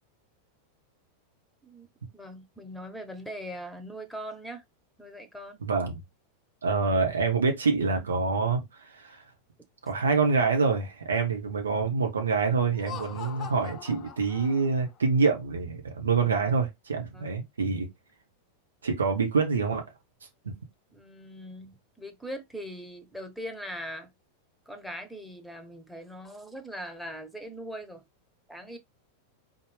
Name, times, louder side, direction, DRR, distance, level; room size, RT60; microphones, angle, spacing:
voice 1, 2.1-4.6 5.0-5.6 17.1-17.3 20.9-24.1 24.7-28.0 28.5-28.8, equal, ahead, 1.1 m, -41 dB
voice 2, 5.6-6.0 6.6-9.2 9.9-17.9 18.8-19.8 20.4-20.5, right 4 dB, 70° right, 1.0 m, -26 dB
Laughter, 12.7-15.0, left 9 dB, 30° left, 0.7 m, -42 dB
4.2 x 3.7 x 3.4 m
figure-of-eight pair, 90°, 0 cm